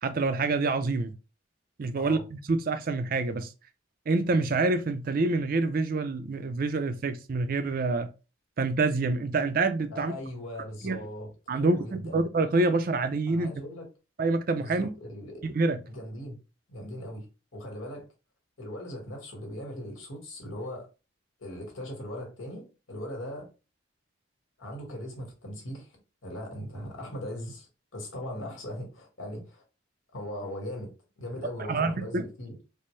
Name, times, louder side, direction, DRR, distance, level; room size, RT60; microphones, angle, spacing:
voice 1, 0.0-1.1 1.8-3.5 4.1-8.1 8.6-10.1 10.8-11.0 11.5-13.5 14.2-14.9 15.4-15.8 31.7-32.2, right 3 dB, 45° right, 0.4 m, -27 dB
voice 2, 9.9-12.2 13.3-13.9 14.6-15.5 15.8-16.4 16.7-17.3 17.5-18.1 18.6-20.9 21.4-23.5 24.6-29.6 30.1-30.9 31.2-32.6, equal, 90° left, 1.5 m, -39 dB
4.3 x 2.1 x 3.1 m
head